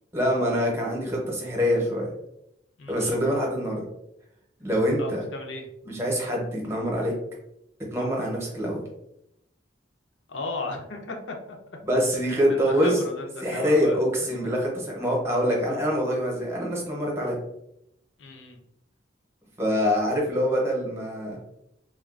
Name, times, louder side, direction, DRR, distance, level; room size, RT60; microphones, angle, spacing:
voice 1, 0.1-2.1 2.9-3.8 4.6-5.2 5.9-7.1 7.9-8.8 11.9-13.0 13.4-17.4 19.6-21.4, equal, 15° right, -2 dB, 0.8 m, -25 dB
voice 2, 2.8-3.2 5.0-5.7 10.3-11.6 12.3-14.0 18.2-18.6, left 2 dB, 80° left, 3 dB, 0.6 m, -35 dB
3.4 x 2.3 x 2.4 m, 0.80 s
head